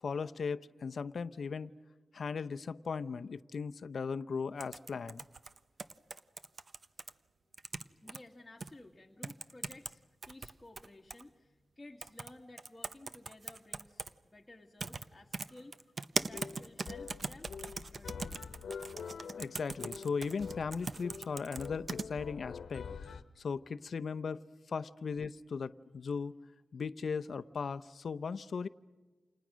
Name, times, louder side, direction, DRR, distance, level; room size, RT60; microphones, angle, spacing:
voice 1, 0.0-1.7 2.1-5.2 19.4-22.8 23.4-26.3 26.7-28.7, left 5 dB, 65° left, 12 dB, 0.8 m, -37 dB
sound 1, 4.6-7.1 7.5-8.2 8.6-8.7 9.2-9.9 10.2-11.2 12.0-12.3 12.6-14.1 14.8-15.0 15.3-22.1, right 3 dB, 45° right, 0.9 m, -40 dB
voice 2, 8.0-15.8 16.2-18.4, left 2 dB, 15° left, -2 dB, 2.0 m, -55 dB
sound 2, 16.2-23.2, left 6 dB, 80° left, 1.2 m, -46 dB
29.5 x 28.0 x 6.3 m, 1.3 s
wide cardioid pair, 105°, 0 cm